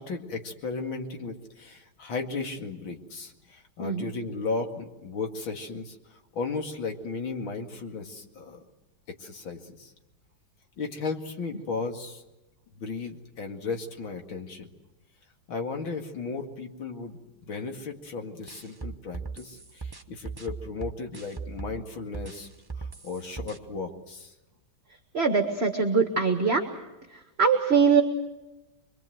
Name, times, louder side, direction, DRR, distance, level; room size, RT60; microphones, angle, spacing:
voice 1, 0.0-8.6 9.1-9.9 10.8-12.2 12.8-14.7 15.5-22.5 22.8-24.3, left 4 dB, 70° left, 3 dB, 3.0 m, -35 dB
sound 1, 18.5-21.8 22.1-23.6, right 5 dB, 15° right, 0.8 m, -38 dB
voice 2, 25.1-26.6 27.4-28.0, right 5 dB, 35° right, 5 dB, 1.6 m, -22 dB
26.5 x 22.0 x 7.9 m, 1.0 s
omnidirectional pair, 2.3 m